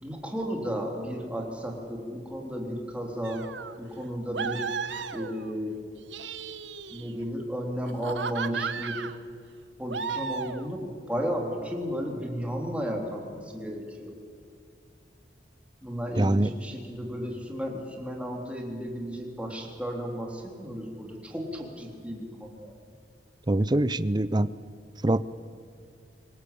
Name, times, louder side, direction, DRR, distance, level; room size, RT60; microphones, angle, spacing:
voice 1, 0.0-3.5 3.8-4.7 5.1-5.8 6.9-9.1 9.8-14.1 15.8-22.8, equal, 5° right, 0 dB, 3.5 m, -34 dB
sound 1, 3.2-3.8 4.3-5.6 6.0-7.3 7.9-9.2 9.9-10.7, right 5 dB, 90° right, 1.1 m, -34 dB
voice 2, 16.2-16.5 23.5-24.5 25.0-25.3, right 1 dB, 25° right, 15 dB, 0.6 m, -23 dB
25.5 x 19.5 x 8.7 m, 2.3 s
head